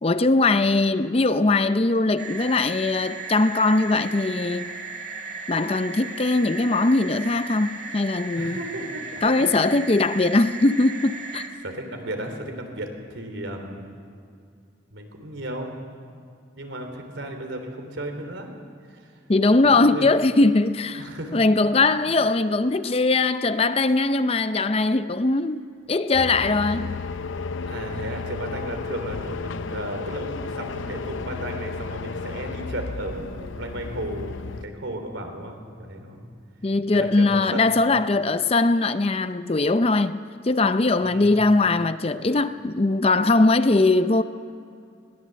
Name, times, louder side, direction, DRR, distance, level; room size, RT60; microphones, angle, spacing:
voice 1, 0.0-4.7 5.5-8.6 9.2-11.5 19.3-21.0 21.3-25.6 25.9-27.0 36.6-44.2, left 2 dB, 30° left, 0.5 m, -21 dB
sound 1, 2.2-11.5, right 4 dB, 40° right, 2.2 m, -36 dB
voice 2, 8.4-9.7 11.6-13.9 14.9-15.7 16.6-18.6 18.9-19.1 19.6-20.0 21.0-21.4 27.6-36.2 36.9-37.7 41.0-41.3, right 1 dB, 80° right, 3.3 m, -34 dB
sound 2, 26.1-34.6, left 4 dB, 80° left, 0.6 m, -33 dB
21.0 x 18.0 x 7.7 m
head